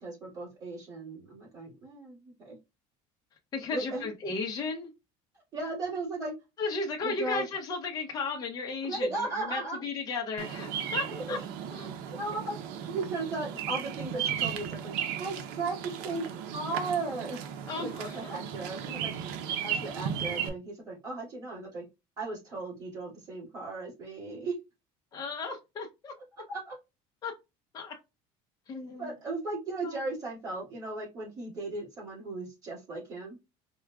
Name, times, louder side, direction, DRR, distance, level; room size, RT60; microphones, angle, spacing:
voice 1, 0.0-2.6 3.7-4.1 5.5-6.3 7.0-7.4 8.8-9.8 11.0-11.4 12.1-12.6 12.9-17.4 17.8-19.1 19.6-21.8 22.2-24.5 26.5-26.8 29.0-33.4, right 3 dB, 25° right, 2.1 m, -36 dB
voice 2, 3.5-4.9 6.6-11.4 11.7-11.9 17.7-18.2 25.1-26.1 27.2-27.3 27.7-27.9 28.7-29.1 29.8-30.0, left 4 dB, 25° left, 0.7 m, -35 dB
Bird vocalization bird call bird song, 10.4-20.5, right 8 dB, 85° right, 0.6 m, -35 dB
4.7 x 2.2 x 2.3 m
cardioid pair, 160°, 14 cm